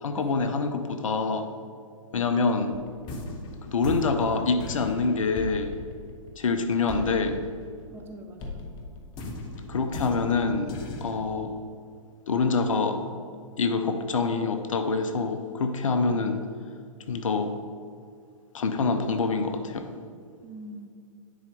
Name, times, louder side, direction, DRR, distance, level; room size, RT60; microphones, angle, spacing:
voice 1, 0.0-1.5 2.1-2.7 3.7-5.7 6.4-7.4 9.7-10.7 11.0-11.5 12.3-13.0 13.6-16.4 17.1-17.5 18.5-19.9, left 4 dB, 70° left, 7 dB, 0.7 m, -26 dB
sound 1, 2.7-8.0 8.4-11.2, left 2 dB, 25° left, 0.8 m, -38 dB
voice 2, 7.9-8.7 20.4-20.9, right 2 dB, 15° right, 2 dB, 0.6 m, -44 dB
9.8 x 4.3 x 3.5 m, 2.2 s
figure-of-eight pair, 120°, 17 cm